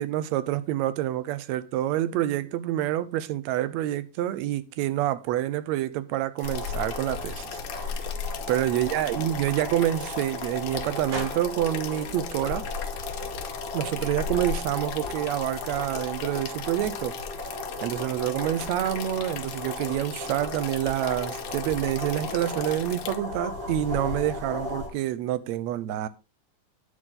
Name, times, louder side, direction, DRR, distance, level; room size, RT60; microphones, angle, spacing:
voice 1, 0.0-7.4 7.9-8.0 8.5-12.6 13.7-17.1 17.8-26.1, right 13 dB, 75° right, 1.9 m, -27 dB
sound 1, 6.4-23.2, left 10 dB, 75° left, 2.2 m, -40 dB
sound 2, 6.4-24.9, left 2 dB, 50° right, 6.8 m, -35 dB
9.4 x 8.1 x 3.8 m
omnidirectional pair, 3.4 m